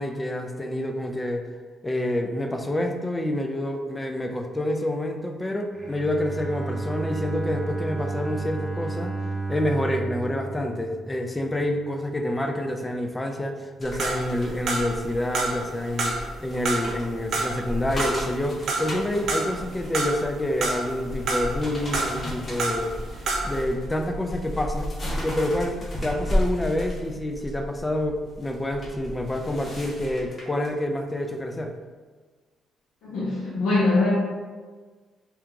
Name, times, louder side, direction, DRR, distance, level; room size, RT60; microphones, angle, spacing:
voice 1, 0.0-1.5 1.8-9.2 9.5-22.9 23.4-24.9 25.2-31.7, left 1 dB, 15° left, 4 dB, 0.4 m, -28 dB
Bowed string instrument, 5.7-11.7, right 3 dB, 10° right, 0.8 m, -32 dB
sound 1, 13.8-30.7 31.1-31.3, equal, 35° left, 0.9 m, -34 dB
sound 2, 14.0-15.1 15.3-16.3 16.6-19.6 19.9-21.0 21.3-22.9 23.2-23.6, right 3 dB, 70° right, 0.5 m, -28 dB
voice 2, 33.0-34.1, left 2 dB, 85° left, -10 dB, 0.9 m, -22 dB
2.8 x 2.4 x 3.6 m, 1.4 s
cardioid pair, 105°, 0 cm